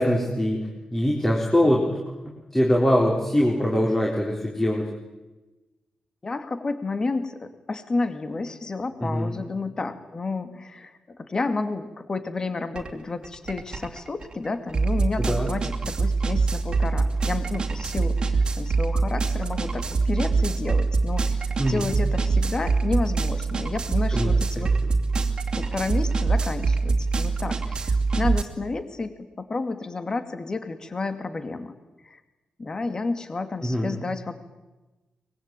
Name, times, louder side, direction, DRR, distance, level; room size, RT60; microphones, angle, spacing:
voice 1, 0.0-1.9 2.5-4.8 9.0-9.3 15.3-15.5 21.6-21.9 24.1-24.7 33.6-33.9, equal, 10° left, -2 dB, 4.1 m, -23 dB
voice 2, 6.2-24.7 25.5-31.7 32.0-32.2 32.6-34.4, left 3 dB, 30° left, 9 dB, 2.3 m, -31 dB
sound 1, 12.8-12.9 13.2-28.4, right 4 dB, 40° right, 2.6 m, -24 dB
24.0 x 22.0 x 9.1 m, 1.1 s
wide cardioid pair, 135°, 2 cm